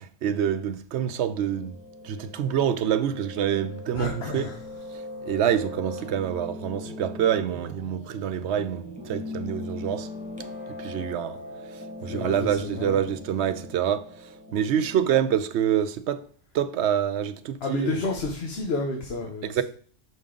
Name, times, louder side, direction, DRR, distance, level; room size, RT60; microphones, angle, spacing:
voice 1, 0.0-1.7 2.0-4.5 5.2-10.1 10.8-11.4 11.7-14.1 14.5-16.3 16.5-18.0 19.4-19.6, right 9 dB, 70° right, 0.9 m, -26 dB
Piano, 1.0-15.4, left 1 dB, 5° right, 1.6 m, -40 dB
voice 2, 3.9-4.6 12.1-13.0 17.6-19.6, left 3 dB, 60° left, 1.1 m, -30 dB
6.2 x 5.4 x 3.7 m
omnidirectional pair, 1.2 m